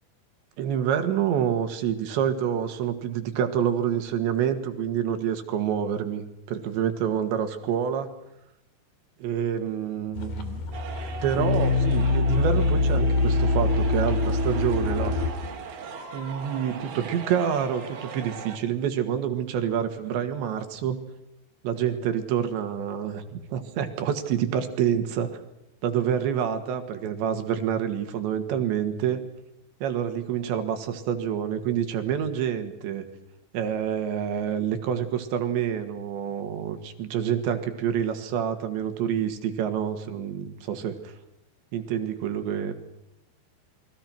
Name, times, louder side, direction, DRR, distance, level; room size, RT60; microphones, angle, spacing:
voice 1, 0.6-8.1 9.2-10.6 11.2-15.2 16.1-21.0 21.6-25.4 25.8-29.2 29.8-33.1 33.5-41.2 41.7-42.7, right 9 dB, 75° right, 8 dB, 4.1 m, -27 dB
sound 1, 10.2-15.3, left 3 dB, 50° left, 3.8 m, -24 dB
sound 2, 10.7-18.6, right 5 dB, 60° right, 4.3 m, -39 dB
30.0 x 22.0 x 6.1 m, 0.85 s
omnidirectional pair, 5.3 m